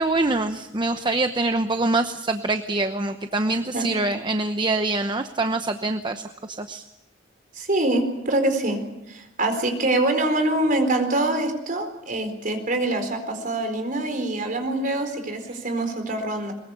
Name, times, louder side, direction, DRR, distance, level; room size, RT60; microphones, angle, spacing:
voice 1, 0.0-6.2 6.6-6.8, right 2 dB, 25° right, 7 dB, 0.9 m, -24 dB
voice 2, 7.5-8.8 9.1-16.5, right 2 dB, 45° right, 6 dB, 4.3 m, -24 dB
22.5 x 21.5 x 8.2 m, 0.94 s
head